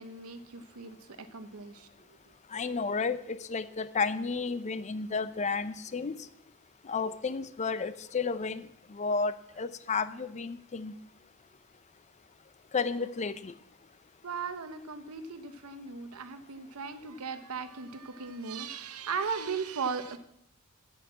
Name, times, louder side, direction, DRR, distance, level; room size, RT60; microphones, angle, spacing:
voice 1, 0.0-1.9 14.2-20.2, right 5 dB, 70° right, 9 dB, 0.8 m, -37 dB
voice 2, 2.5-6.2 6.8-10.9 12.7-13.5, left 4 dB, 30° left, 14 dB, 0.5 m, -32 dB
8.3 x 8.0 x 7.4 m, 0.76 s
head